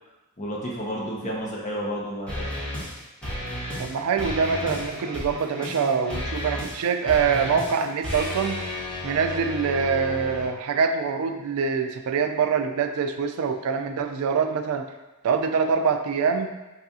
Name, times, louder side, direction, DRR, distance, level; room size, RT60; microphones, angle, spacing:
voice 1, 0.4-2.5, equal, 35° left, -3 dB, 0.7 m, -31 dB
sound 1, 2.3-2.9 3.2-3.9 4.2-10.5, left 1 dB, 5° left, 1.0 m, -32 dB
voice 2, 3.8-8.6 9.0-14.8 15.2-16.5, right 6 dB, 75° right, 6 dB, 0.3 m, -24 dB
4.8 x 2.7 x 2.4 m, 1.0 s
head